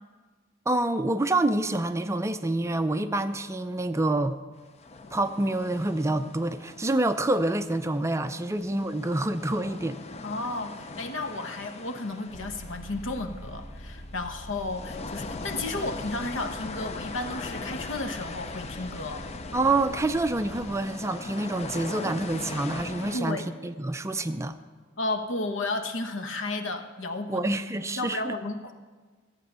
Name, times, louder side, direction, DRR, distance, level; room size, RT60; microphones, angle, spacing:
voice 1, 0.7-4.4 5.1-10.0 19.5-24.6 27.3-28.3, right 2 dB, 15° right, 9 dB, 0.4 m, -27 dB
sound 1, 4.8-8.2 8.6-23.2, left 3 dB, 35° left, 0.6 m, -40 dB
voice 2, 10.2-19.2 23.1-23.5 25.0-27.5 28.0-28.7, left 2 dB, 70° left, 6 dB, 1.1 m, -33 dB
sound 2, 12.3-20.8, equal, 20° left, 1.0 m, -44 dB
14.5 x 8.3 x 6.8 m, 1.4 s
head